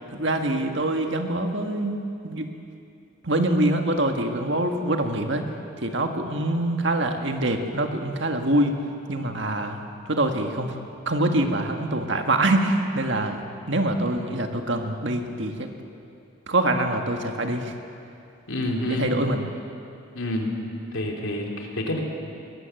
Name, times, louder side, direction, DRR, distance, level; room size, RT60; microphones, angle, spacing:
voice 1, 0.1-2.0 2.2-2.5 3.2-5.5 5.8-8.7 9.1-10.8 11.0-13.4 13.7-15.7 16.5-17.7 18.9-19.5, right 1 dB, 60° right, 4 dB, 1.7 m, -24 dB
voice 2, 18.5-19.1 20.1-20.5 20.9-22.0, left 1 dB, 80° left, 1 dB, 3.3 m, -28 dB
21.0 x 19.0 x 7.9 m, 2.6 s
head